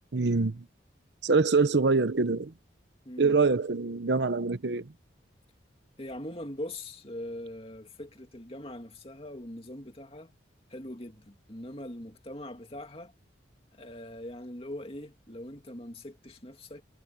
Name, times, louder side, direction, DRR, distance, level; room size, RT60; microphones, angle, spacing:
voice 1, 0.1-0.6 1.2-2.5 3.2-4.9, right 4 dB, 65° right, 0.8 m, -25 dB
voice 2, 3.0-3.4 6.0-10.3 10.7-13.1 13.7-16.8, left 1 dB, 30° left, 2.6 m, -41 dB
head